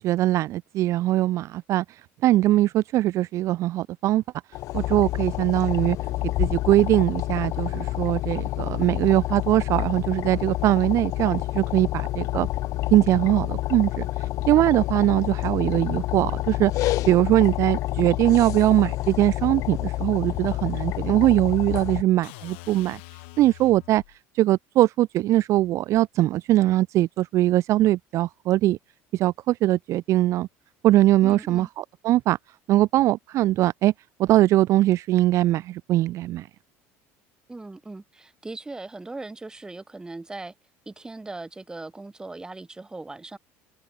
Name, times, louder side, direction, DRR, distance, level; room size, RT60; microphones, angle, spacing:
voice 1, 0.0-1.8 2.2-4.2 4.7-6.0 6.4-12.5 12.9-23.0 23.4-24.0 24.3-28.8 29.1-30.5 30.8-32.4 32.7-33.9 34.2-36.5, right 15 dB, 55° right, 0.3 m, -21 dB
sound 1, 4.5-22.0, left 16 dB, 60° left, 1.0 m, -28 dB
sound 2, 22.2-24.2, left 27 dB, 85° left, 4.4 m, -44 dB
voice 2, 31.2-31.7 37.5-40.5 40.9-43.4, right 2 dB, 10° right, 1.0 m, -39 dB
supercardioid pair, 110°, 6 cm